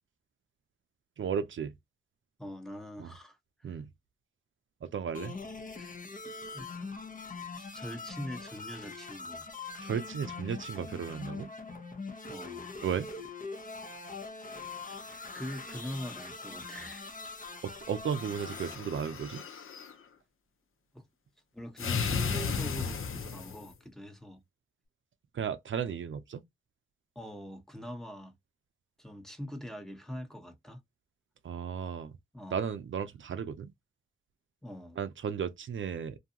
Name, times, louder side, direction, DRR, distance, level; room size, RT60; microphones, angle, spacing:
voice 1, 1.2-1.7 3.0-3.1 3.6-3.9 4.8-5.4 9.8-11.5 12.8-13.1 17.6-19.4 25.3-26.4 31.4-32.1 32.5-33.7 35.0-36.2, right 7 dB, 70° right, 0.4 m, -34 dB
voice 2, 2.4-3.8 5.8-5.9 6.5-6.9 7.7-9.5 12.3-12.7 14.8-17.1 20.9-21.0 21.5-24.4 27.1-28.3 29.0-30.8 32.3-32.6 34.6-35.0, equal, ahead, 0.9 m, -43 dB
sound 1, 5.1-18.8, left 3 dB, 40° left, 0.8 m, -42 dB
sound 2, 18.2-19.9 21.8-23.7, left 5 dB, 80° left, 0.6 m, -34 dB
2.6 x 2.3 x 2.7 m
cardioid pair, 45°, 21 cm